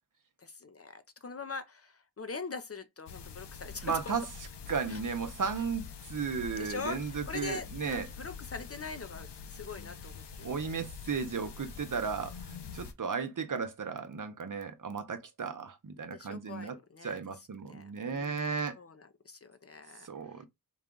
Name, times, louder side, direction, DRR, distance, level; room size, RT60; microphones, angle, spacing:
voice 1, 0.4-4.1 4.9-5.0 6.6-10.9 16.1-17.2 17.7-20.5, left 4 dB, 35° left, 0.6 m, -43 dB
sound 1, 3.1-12.9, left 6 dB, 80° left, 0.7 m, -45 dB
voice 2, 3.8-4.2 4.7-8.1 10.4-16.8 17.0-18.8 20.0-20.5, right 5 dB, 50° right, 0.8 m, -35 dB
4.0 x 2.3 x 3.8 m
wide cardioid pair, 75°, 41 cm